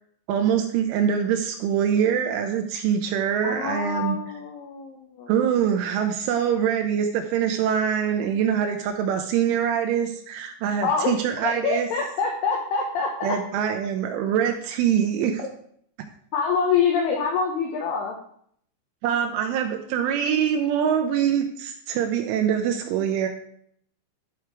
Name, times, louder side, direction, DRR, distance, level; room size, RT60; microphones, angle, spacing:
voice 1, 0.3-4.2 5.3-11.9 13.2-15.4 16.0-16.1 19.0-23.3, right 8 dB, 80° right, 4 dB, 3.0 m, -24 dB
voice 2, 3.4-5.3 10.8-13.4 16.3-18.2, left 5 dB, 90° left, 2 dB, 2.3 m, -25 dB
12.5 x 4.6 x 4.7 m, 0.65 s
omnidirectional pair, 5.9 m